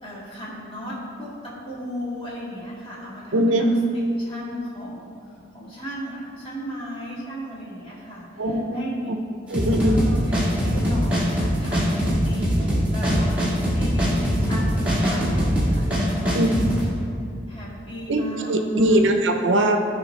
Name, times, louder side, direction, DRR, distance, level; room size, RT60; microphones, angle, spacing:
voice 1, 0.0-3.7 4.2-9.1 9.8-16.4 17.5-19.0, equal, 30° left, -7 dB, 2.0 m, -36 dB
voice 2, 3.3-3.7 8.4-9.2 9.5-10.0 16.3-16.5 18.1-19.8, right 1 dB, 75° right, 5 dB, 0.6 m, -21 dB
sound 1, 9.5-16.8, equal, 5° right, 1.6 m, -22 dB
13.0 x 4.9 x 3.2 m, 2.5 s
head